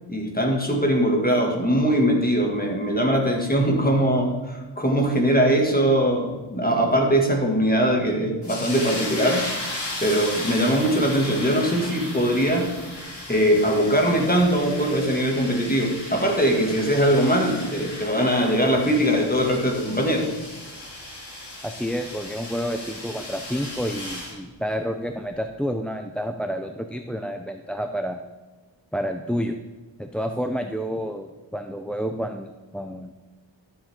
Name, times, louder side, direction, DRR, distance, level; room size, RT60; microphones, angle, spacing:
voice 1, 0.1-9.5 10.0-12.7 13.3-20.3, equal, 20° left, 0 dB, 2.1 m, -21 dB
sound 1, 8.4-24.3, left 1 dB, 55° left, 3.1 m, -36 dB
voice 2, 21.6-28.2 28.9-29.5 30.0-33.1, equal, ahead, 6 dB, 0.5 m, -29 dB
12.5 x 7.4 x 3.7 m, 1.3 s
wide cardioid pair, 80°, 48 cm